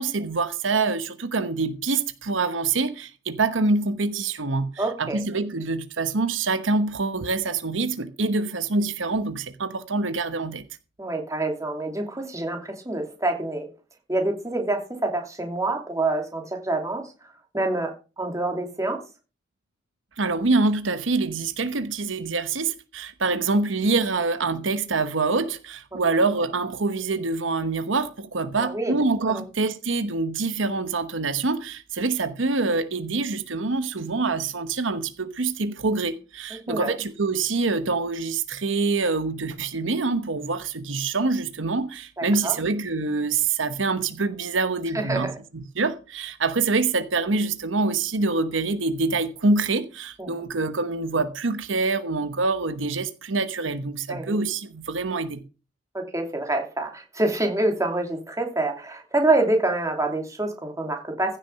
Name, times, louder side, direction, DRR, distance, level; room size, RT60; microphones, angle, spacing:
voice 1, 0.0-10.7 20.2-55.4, right 3 dB, 80° right, 1.1 m, -25 dB
voice 2, 4.8-5.2 11.0-13.7 14.1-17.1 17.5-19.0 25.9-26.0 28.6-28.9 29.2-29.4 36.7-36.9 42.2-42.5 44.9-45.3 50.2-50.3 54.1-54.4 55.9-61.4, right 2 dB, 15° right, 2.8 m, -26 dB
15.5 x 6.7 x 5.7 m
head